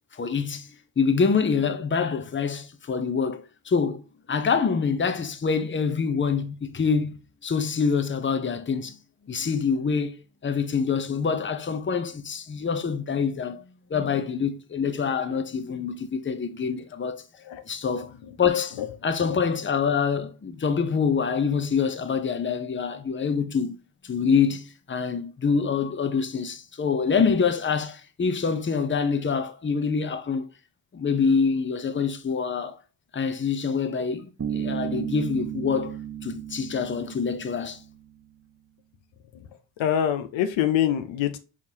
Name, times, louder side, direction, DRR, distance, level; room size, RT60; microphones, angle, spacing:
voice 1, 0.1-0.7 1.0-9.0 9.2-10.2 10.4-13.6 13.9-17.2 17.7-23.8 24.0-30.5 30.9-32.8 33.1-36.0 36.2-37.8, left 5 dB, 25° left, 0.7 m, -26 dB
voice 2, 18.0-18.4 18.7-18.9 19.3-19.4 39.3-39.5 39.8-41.4, left 10 dB, 80° left, 0.7 m, -26 dB
Bass guitar, 34.4-38.1, right 9 dB, 30° right, 0.8 m, -34 dB
4.7 x 3.6 x 2.8 m
supercardioid pair, 55°, 45 cm